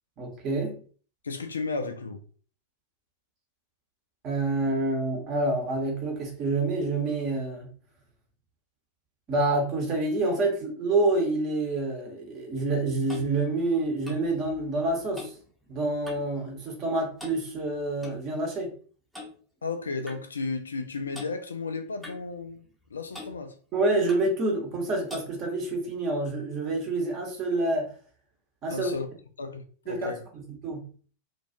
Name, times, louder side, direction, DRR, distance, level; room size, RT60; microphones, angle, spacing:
voice 1, 0.2-0.8 4.2-7.7 9.3-15.3 15.7-18.7 23.7-27.9 28.6-28.9 29.9-30.9, right 2 dB, 35° right, 0.8 m, -27 dB
voice 2, 1.2-2.2 19.6-23.6 28.7-29.1 29.4-30.2, left 4 dB, 70° left, 0.3 m, -34 dB
Clock, 12.5-16.4 16.6-16.9 17.2-18.2 19.1-19.3 20.1-20.2 21.1-21.3 22.0-22.8 23.1-23.4 24.1-24.3 25.1-25.3, left 2 dB, ahead, 0.7 m, -44 dB
2.3 x 2.2 x 2.6 m
figure-of-eight pair, 90°, 0 cm